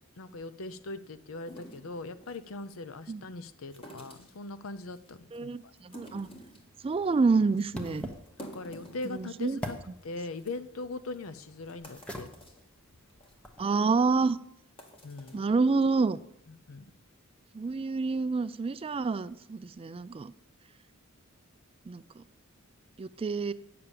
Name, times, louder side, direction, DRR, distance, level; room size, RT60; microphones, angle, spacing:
voice 1, 0.2-5.7 7.8-8.1 8.4-9.8 10.0-12.3 15.0-15.4 16.5-16.8, left 3 dB, 70° left, 13 dB, 0.7 m, -40 dB
sound 1, 1.5-2.4 3.7-4.4 4.9-5.4 5.8-6.7 7.1-7.2 7.6-7.7 8.1-9.7 10.0-10.1 10.4-10.5 11.2-11.3 11.7-12.6 13.1-13.3 13.8-14.0 14.6-15.4, equal, 25° left, 1.6 m, -50 dB
voice 2, 5.3-6.3 6.8-8.1 9.0-9.6 13.6-14.4 15.3-16.2 17.5-20.3 21.9-22.2 23.0-23.5, right 4 dB, 25° right, 15 dB, 0.3 m, -28 dB
sound 2, 6.0-13.7, left 1 dB, 5° left, 1.0 m, -46 dB
8.9 x 6.8 x 6.9 m, 0.79 s
head